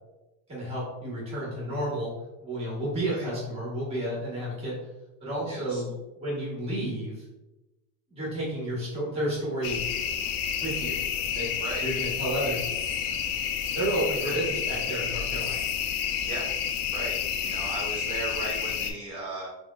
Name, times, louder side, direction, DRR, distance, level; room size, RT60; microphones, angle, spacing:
voice 1, 0.5-2.1 2.4-4.8 5.2-7.2 8.1-9.8 10.6-11.0 11.3-11.5 11.8-12.7 13.7-15.7, right 1 dB, 10° right, -6 dB, 1.1 m, -31 dB
voice 2, 5.5-5.8 11.6-11.9 14.2-14.4 16.2-16.5 16.9-19.5, right 2 dB, 35° right, -4 dB, 0.6 m, -37 dB
sound 1, 9.6-18.9, left 8 dB, 60° left, 0.5 m, -30 dB
3.4 x 3.2 x 2.3 m, 1.0 s
supercardioid pair, 165°, 48 cm